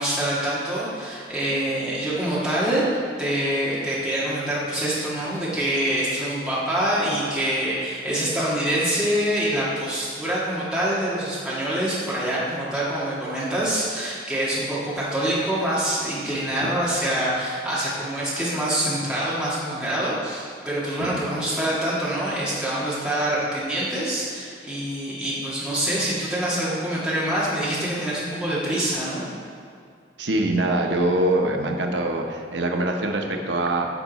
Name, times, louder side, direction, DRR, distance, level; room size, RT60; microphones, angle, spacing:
voice 1, 0.0-2.8 3.2-29.2, right 1 dB, 5° right, -9 dB, 1.8 m, -25 dB
voice 2, 30.2-33.9, right 1 dB, 90° right, 3 dB, 0.8 m, -24 dB
10.5 x 5.4 x 4.0 m, 2.2 s
head